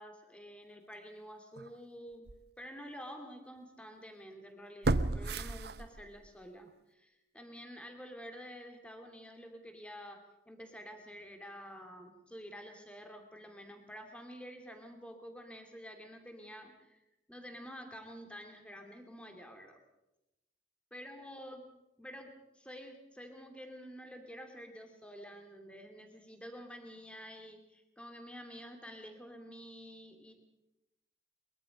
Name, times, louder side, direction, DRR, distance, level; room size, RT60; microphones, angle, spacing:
voice 1, 0.0-2.3 2.6-17.0 17.3-19.8 20.9-21.7 22.0-30.3, equal, 5° left, 4 dB, 2.6 m, -49 dB
sound 1, 1.6-1.7 2.3-2.4 4.8-6.3 6.7-6.8, right 2 dB, 60° right, 0.8 m, -32 dB
22.5 x 22.5 x 5.3 m, 0.95 s
head